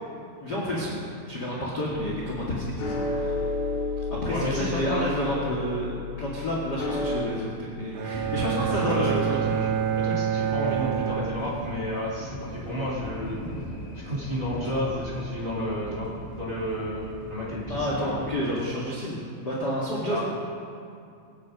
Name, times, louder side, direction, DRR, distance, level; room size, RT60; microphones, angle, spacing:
voice 1, 0.4-1.0 1.3-3.3 4.0-5.9 6.2-9.4 17.7-20.2, equal, 35° left, -5 dB, 1.6 m, -30 dB
sound 1, 1.9-7.2, left 3 dB, 85° left, 4.7 m, -32 dB
voice 2, 4.3-5.0 6.8-7.0 8.4-8.5 8.8-9.7 9.9-13.4 14.0-16.1 16.4-17.0 17.3-18.2 20.1-20.2, equal, 20° right, -6 dB, 3.5 m, -31 dB
Bowed string instrument, 7.9-12.0, right 9 dB, 85° right, 3.5 m, -28 dB
sound 2, 8.1-18.2, equal, 70° left, 0.4 m, -39 dB
25.5 x 9.7 x 5.2 m, 2.4 s
omnidirectional pair, 5.5 m